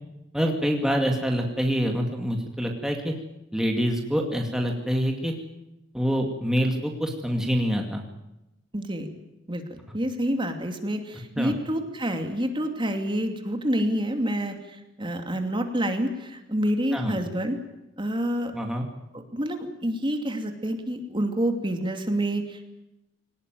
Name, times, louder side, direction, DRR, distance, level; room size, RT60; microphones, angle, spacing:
voice 1, 0.3-3.1 3.5-5.3 5.9-8.0 11.4-11.5 16.9-17.1 18.5-18.9, equal, 5° right, 2 dB, 2.3 m, -26 dB
voice 2, 8.7-9.1 9.5-17.6 18.0-18.5 19.1-22.7, equal, 25° right, 5 dB, 2.7 m, -28 dB
23.0 x 19.0 x 9.3 m, 0.92 s
head